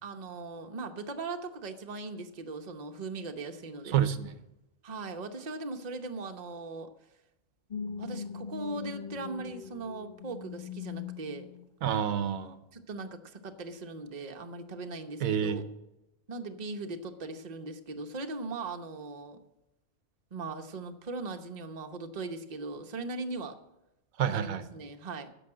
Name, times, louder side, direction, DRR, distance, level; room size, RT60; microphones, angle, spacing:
voice 1, 0.0-4.0 4.8-6.9 8.0-11.5 12.7-15.6 16.3-19.4 20.3-23.6 24.3-25.3, right 3 dB, 35° right, 5 dB, 0.9 m, -39 dB
voice 2, 3.9-4.3 11.8-12.6 15.2-15.6 24.2-24.6, right 9 dB, 90° right, 12 dB, 1.2 m, -28 dB
sound 1, 7.7-11.7 12.2-12.4, left 6 dB, 40° left, 0.9 m, -41 dB
10.5 x 7.0 x 8.7 m, 0.91 s
omnidirectional pair, 1.4 m